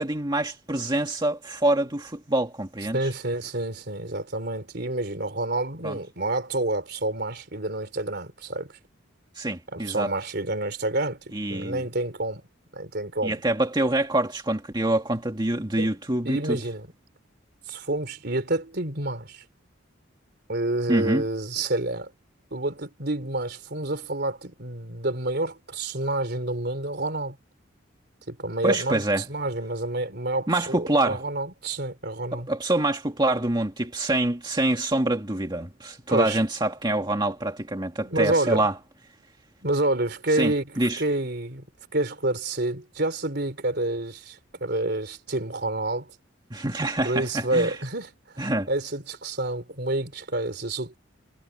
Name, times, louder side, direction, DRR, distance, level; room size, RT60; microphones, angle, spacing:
voice 1, 0.0-3.1 5.8-6.0 9.4-10.1 11.3-11.8 13.2-16.6 20.9-21.2 28.6-29.3 30.5-31.2 32.3-38.7 40.3-41.0 46.5-47.8 48.4-48.7, right 1 dB, 20° right, 1.8 m, -25 dB
voice 2, 2.9-8.7 9.7-12.4 12.7-13.4 15.8-15.9 16.2-16.9 17.7-19.4 20.5-22.1 22.5-27.4 28.3-32.5 36.1-36.4 38.0-38.6 39.6-41.7 41.9-46.1 47.0-48.1 48.7-51.0, right 2 dB, 55° right, 3.7 m, -28 dB
head